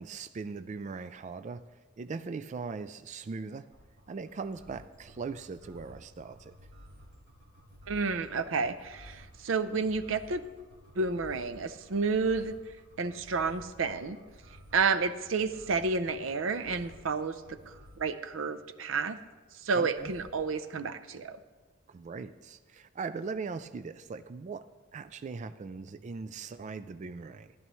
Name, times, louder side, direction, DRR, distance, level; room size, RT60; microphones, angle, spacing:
voice 1, 0.0-3.7 4.1-6.6 19.7-20.1 21.9-27.5, right 4 dB, 40° right, 12 dB, 0.3 m, -40 dB
sound 1, 3.7-18.1 19.9-20.5, equal, 70° right, 4.0 m, -53 dB
voice 2, 7.9-10.4 11.0-12.5 13.0-14.2 14.7-17.7 18.0-19.2 19.6-21.4, right 4 dB, 90° right, 12 dB, 0.6 m, -30 dB
14.0 x 12.5 x 3.1 m, 1.3 s
head